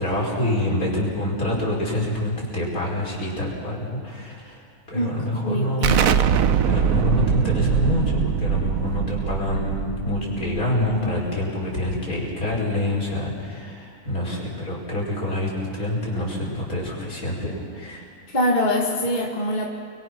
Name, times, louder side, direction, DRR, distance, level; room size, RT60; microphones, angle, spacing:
voice 1, 0.0-4.6 4.9-6.0 6.6-18.1, left 1 dB, 70° left, -3 dB, 5.8 m, -26 dB
voice 2, 5.4-6.3 18.3-19.7, equal, 30° left, -1 dB, 2.0 m, -24 dB
Explosion, 5.8-11.3, right 7 dB, 70° right, 1.2 m, -22 dB
29.5 x 22.5 x 6.1 m, 2.2 s
omnidirectional pair, 1.6 m